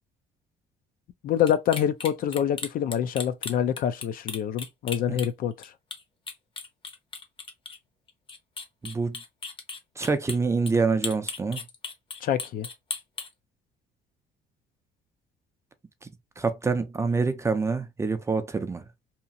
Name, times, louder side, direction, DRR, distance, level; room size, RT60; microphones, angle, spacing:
voice 1, 1.2-5.7 12.2-12.7, left 9 dB, 55° left, 0.4 m, -26 dB
sound 1, 1.5-5.7 5.9-6.0 6.3-7.8 8.1-10.4 10.7-10.8 11.0-13.3, left 4 dB, 30° left, 0.7 m, -36 dB
voice 2, 8.8-9.2 10.0-11.6 16.4-18.8, right 4 dB, 15° right, 0.4 m, -26 dB
2.8 x 2.4 x 2.6 m
cardioid pair, 110°, 17 cm